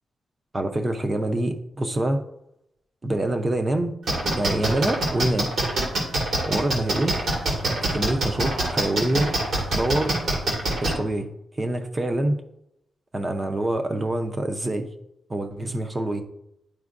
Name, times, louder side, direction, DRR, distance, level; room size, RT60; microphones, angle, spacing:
voice 1, 0.5-2.2 3.0-3.9 4.3-5.5 6.5-7.2 7.9-9.3 9.7-10.2 10.8-11.3 11.6-12.4 13.1-14.9 15.3-16.2, right 1 dB, 25° right, 6 dB, 0.6 m, -25 dB
sound 1, 4.1-10.9, right 2 dB, 70° right, 2.0 m, -24 dB
10.5 x 4.3 x 2.5 m, 0.81 s
wide cardioid pair, 140°, 0 cm